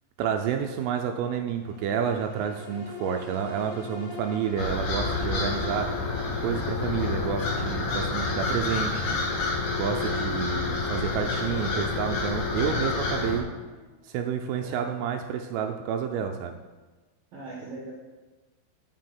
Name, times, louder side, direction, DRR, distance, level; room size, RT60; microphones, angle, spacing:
voice 1, 0.2-5.9 6.4-9.2 9.8-13.5 14.0-16.5, right 8 dB, 85° right, 4 dB, 3.1 m, -29 dB
sound 1, 1.6-16.3 16.7-16.8, left 3 dB, 55° left, 3.0 m, -44 dB
sound 2, 4.6-13.4, left 3 dB, 75° left, 2.0 m, -29 dB
voice 2, 17.3-17.9, right 3 dB, 65° right, -2 dB, 2.5 m, -41 dB
7.5 x 6.4 x 7.5 m, 1.2 s
omnidirectional pair, 5.8 m